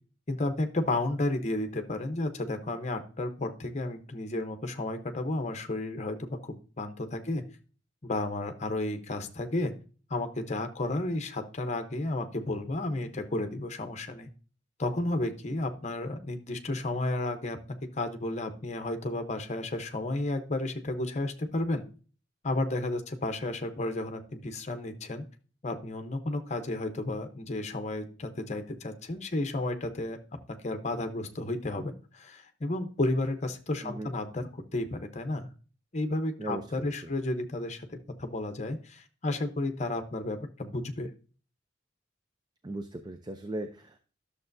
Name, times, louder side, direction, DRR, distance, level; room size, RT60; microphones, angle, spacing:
voice 1, 0.3-7.4 8.0-9.7 10.1-14.3 14.8-17.6 17.9-21.9 22.4-25.2 25.6-30.2 30.6-35.5 35.9-41.1, left 2 dB, 35° left, 7 dB, 0.9 m, -32 dB
voice 2, 33.8-34.1 36.4-37.1 42.6-44.0, right 1 dB, 20° right, 7 dB, 0.5 m, -38 dB
11.0 x 6.7 x 2.6 m, 0.39 s
head